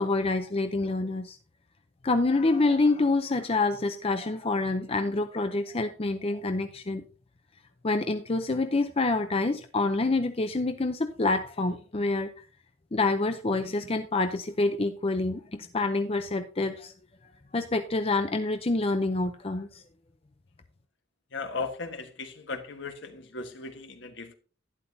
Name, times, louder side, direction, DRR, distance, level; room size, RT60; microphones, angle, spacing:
voice 1, 0.0-1.4 2.0-7.0 7.8-12.3 12.9-16.9 17.5-19.8, left 3 dB, 30° left, 0.6 m, -27 dB
voice 2, 21.3-24.4, left 4 dB, 60° left, 1.4 m, -37 dB
11.5 x 11.0 x 2.7 m
head